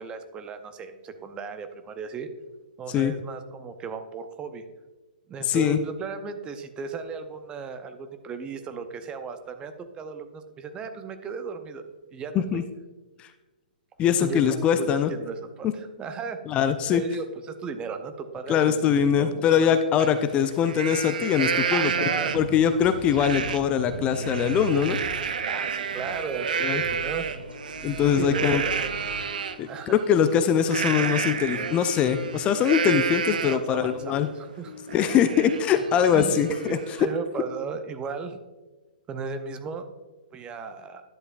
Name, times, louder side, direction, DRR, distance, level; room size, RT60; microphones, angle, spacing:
voice 1, 0.0-2.3 2.8-4.6 5.3-11.8 12.1-12.6 14.2-16.4 16.9-19.7 21.7-22.4 25.5-27.2 28.2-28.9 29.7-30.0 33.3-34.7 35.7-35.8 36.1-38.4 39.1-39.9 40.3-41.0, right 5 dB, 20° right, 8 dB, 0.7 m, -36 dB
voice 2, 5.4-5.8 12.5-12.6 13.2-13.3 14.0-15.1 16.5-17.0 18.5-21.9 22.3-25.0 26.6-26.8 27.8-28.6 29.6-34.3 34.9-36.8, left 8 dB, 25° left, 9 dB, 0.4 m, -22 dB
Livestock farm animals working animals, 20.0-20.1 20.5-22.6 23.2-23.6 24.0-29.6 30.7-33.8 34.2-34.3 34.6-37.0, right 6 dB, 65° right, 0.6 m, -30 dB
sound 1, 21.8-29.2, right 1 dB, 90° right, 1.7 m, -38 dB
sound 2, 27.4-30.0 30.2-34.2 34.5-36.2, left 6 dB, 65° left, 0.7 m, -46 dB
11.0 x 7.7 x 2.5 m, 1.2 s
figure-of-eight pair, 120°, 5 cm